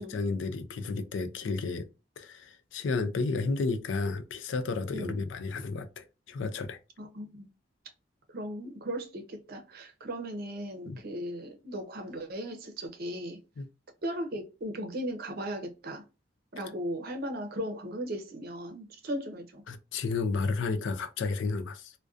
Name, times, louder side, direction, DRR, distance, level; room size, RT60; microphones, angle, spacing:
voice 1, 0.0-1.9 2.2-6.8 10.9-11.0 13.6-13.7 19.7-21.9, left 4 dB, 75° left, 0.4 m, -32 dB
voice 2, 7.0-7.5 8.3-13.4 14.0-16.0 16.5-19.6, equal, 55° right, 0.6 m, -37 dB
2.4 x 2.2 x 2.4 m
head